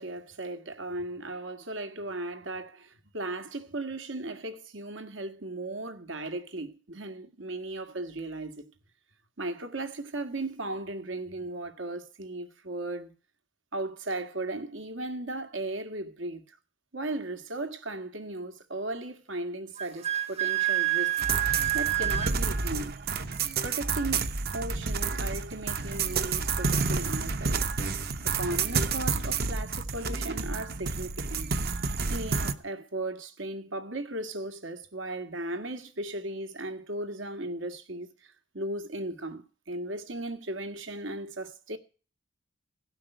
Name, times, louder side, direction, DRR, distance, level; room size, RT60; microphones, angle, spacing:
voice 1, 0.0-8.7 9.4-13.1 13.7-16.6 16.9-21.2 21.4-23.0 23.6-27.6 28.2-31.8 32.1-41.8, right 2 dB, 75° right, 1.8 m, -36 dB
Wind instrument woodwind instrument, 19.8-22.4, right 14 dB, 35° right, 0.8 m, -27 dB
sound 1, 21.2-32.5, right 4 dB, 55° right, 1.1 m, -30 dB
17.0 x 5.8 x 9.0 m
head